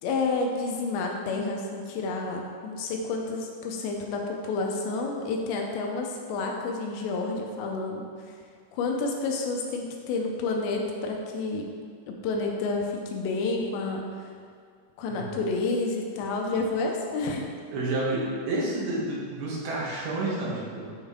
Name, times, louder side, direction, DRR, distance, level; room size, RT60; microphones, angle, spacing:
voice 1, 0.0-8.4 8.7-11.7 12.1-14.3 15.0-17.5, left 3 dB, 80° left, 1 dB, 2.9 m, -30 dB
voice 2, 17.7-21.0, right 2 dB, 80° right, -5 dB, 3.6 m, -30 dB
9.1 x 5.3 x 3.6 m, 2.1 s
omnidirectional pair, 5.1 m